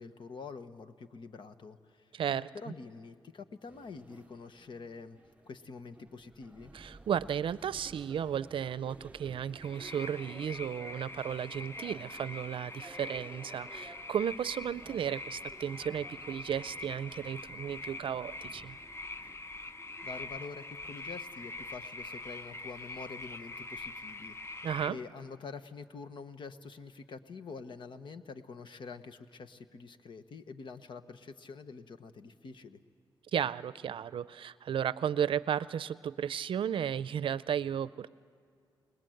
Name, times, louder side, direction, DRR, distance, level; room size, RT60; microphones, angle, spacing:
voice 1, 0.0-5.2 5.4-6.7 20.0-32.8, left 4 dB, 65° left, 10 dB, 1.2 m, -46 dB
voice 2, 2.1-2.5 6.7-18.8 24.6-25.0 33.3-38.1, right 9 dB, 75° right, 17 dB, 0.5 m, -34 dB
sound 1, 3.7-20.4, right 2 dB, 15° right, 0.6 m, -55 dB
sound 2, 9.6-24.9, left 2 dB, 30° left, 0.8 m, -44 dB
29.0 x 20.0 x 7.9 m, 2.3 s
cardioid pair, 80°, 9 cm